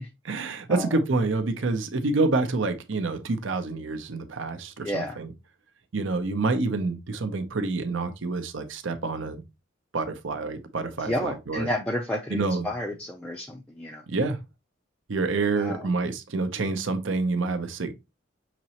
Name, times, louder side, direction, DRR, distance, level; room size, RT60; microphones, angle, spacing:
voice 1, 0.2-5.3 5.9-9.4 9.9-11.7 12.3-12.7 14.1-14.4 15.1-17.9, right 3 dB, 70° right, 0.7 m, -27 dB
voice 2, 4.8-5.2 11.1-14.0 15.6-15.8, left 1 dB, 5° left, 0.4 m, -31 dB
5.9 x 3.0 x 2.8 m
head